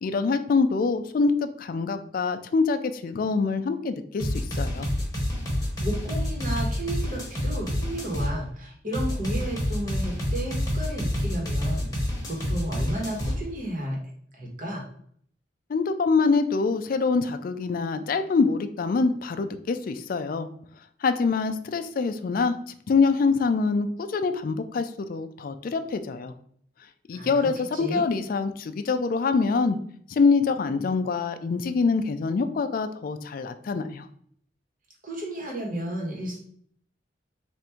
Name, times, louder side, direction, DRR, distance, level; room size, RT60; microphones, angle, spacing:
voice 1, 0.0-4.9 15.7-20.5 21.0-22.6 22.9-26.3 27.1-29.8 30.1-34.1, left 4 dB, 50° left, 9 dB, 0.3 m, -25 dB
sound 1, 4.2-8.3 8.9-13.3, equal, 20° left, 1.0 m, -28 dB
voice 2, 5.6-14.0 14.3-14.8 27.1-28.1 35.0-36.4, right 1 dB, 45° right, -2 dB, 1.3 m, -33 dB
3.5 x 2.5 x 4.3 m, 0.62 s
head